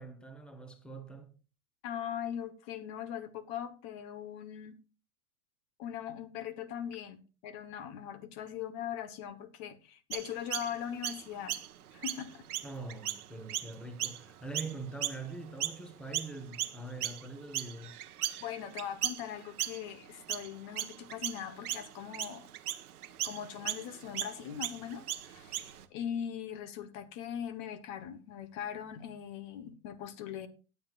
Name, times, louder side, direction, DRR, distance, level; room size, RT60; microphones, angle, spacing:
voice 1, 0.0-1.3 12.6-18.0, right 3 dB, ahead, 1.2 m, -43 dB
voice 2, 1.8-4.8 5.8-11.6 11.9-12.4 18.4-22.5 23.2-30.5, left 9 dB, 45° left, 1.2 m, -40 dB
Chirp tweet, 10.1-15.8 16.1-25.9, right 12 dB, 90° right, 1.3 m, -38 dB
18.5 x 7.8 x 2.5 m
hypercardioid pair, 130°, 43 cm